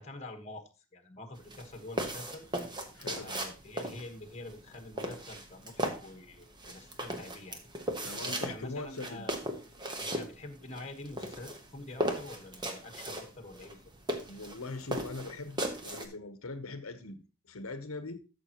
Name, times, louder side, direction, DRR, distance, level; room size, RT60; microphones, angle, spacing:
voice 1, 0.0-2.5 3.1-7.6 8.2-9.3 10.0-13.9, left 2 dB, 30° left, 1.3 m, -46 dB
sound 1, 1.4-16.1, right 1 dB, 20° right, 1.1 m, -37 dB
voice 2, 2.9-3.3 8.0-9.3 14.3-17.2 17.5-18.2, left 3 dB, 80° left, 0.9 m, -41 dB
13.5 x 6.7 x 3.0 m
head